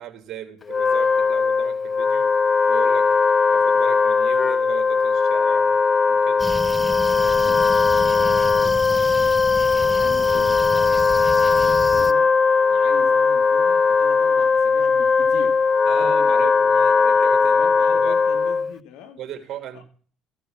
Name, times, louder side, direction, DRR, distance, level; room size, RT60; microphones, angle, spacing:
voice 1, 0.0-2.3 2.7-3.1 3.5-6.4 15.8-18.2 19.2-19.8, right 11 dB, 55° right, 3.1 m, -37 dB
Wind instrument woodwind instrument, 0.6-18.8, left 4 dB, 35° left, 0.6 m, -19 dB
sound 1, 6.4-12.1, right 1 dB, 5° right, 1.1 m, -32 dB
voice 2, 7.4-9.4 9.8-12.3 12.7-15.6 15.9-16.5 17.5-19.2 19.7-19.8, left 7 dB, 75° left, 2.2 m, -41 dB
15.0 x 6.8 x 7.4 m
hypercardioid pair, 60°, 0 cm